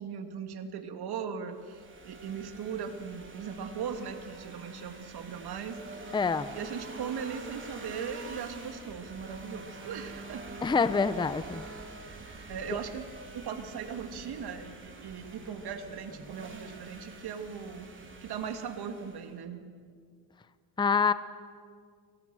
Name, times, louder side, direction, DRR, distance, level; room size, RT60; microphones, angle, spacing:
voice 1, 0.0-6.1 6.5-10.4 12.5-17.8 18.2-19.6, right 7 dB, 55° right, 7 dB, 2.7 m, -39 dB
sound 1, 1.5-19.4, right 3 dB, 25° right, 3.7 m, -46 dB
voice 2, 6.1-6.5 10.6-11.7 20.8-21.1, left 5 dB, 10° left, 14 dB, 0.7 m, -26 dB
29.5 x 24.0 x 6.4 m, 2.1 s
cardioid pair, 120°, 46 cm